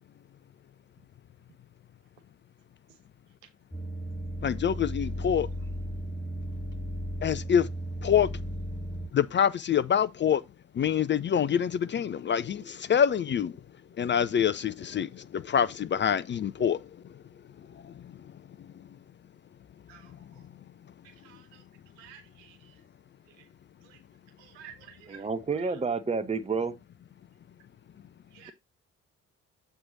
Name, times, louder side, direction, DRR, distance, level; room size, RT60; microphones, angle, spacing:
sound 1, 3.7-9.1, equal, 10° left, 2.0 m, -35 dB
voice 1, 4.4-5.5 7.2-7.7 8.0-8.3 9.1-10.4 10.8-13.5 14.0-16.8, left 8 dB, 30° left, 0.5 m, -26 dB
voice 2, 21.0-21.6 22.0-22.7 23.8-24.0 24.4-25.3 25.6-25.7 28.3-28.5, right 9 dB, 75° right, 1.5 m, -51 dB
voice 3, 25.1-26.7, right 4 dB, 20° right, 0.9 m, -29 dB
7.8 x 4.6 x 3.9 m
figure-of-eight pair, 45°, 36 cm